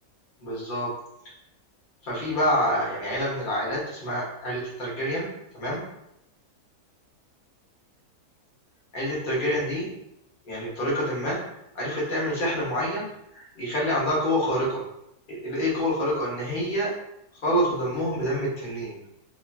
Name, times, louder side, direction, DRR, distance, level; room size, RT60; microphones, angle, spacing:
voice 1, 0.4-0.9 2.0-5.3 5.5-5.8 8.9-9.9 10.4-11.4 11.7-13.1 13.3-14.8 15.3-16.9 17.4-19.0, equal, 45° left, -5 dB, 0.8 m, -27 dB
3.1 x 2.1 x 2.4 m, 0.81 s
omnidirectional pair, 1.6 m